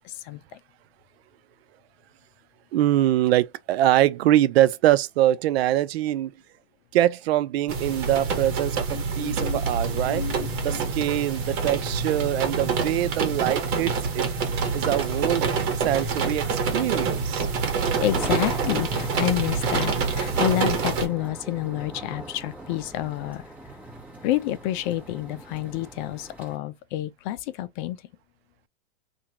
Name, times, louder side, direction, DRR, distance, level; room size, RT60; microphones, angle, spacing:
voice 1, 0.0-0.4 8.9-9.6 10.1-10.8 18.0-23.4 24.2-28.0, left 14 dB, 50° left, 0.6 m, -29 dB
voice 2, 2.7-6.3 6.9-10.2 10.6-14.3 14.7-15.4 15.8-17.5, right 13 dB, 80° right, 0.5 m, -23 dB
sound 1, 7.7-21.1, right 5 dB, 45° right, 1.2 m, -26 dB
sound 2, 9.4-26.6, right 1 dB, 5° right, 1.3 m, -42 dB
2.9 x 2.5 x 2.7 m
supercardioid pair, 135°, 31 cm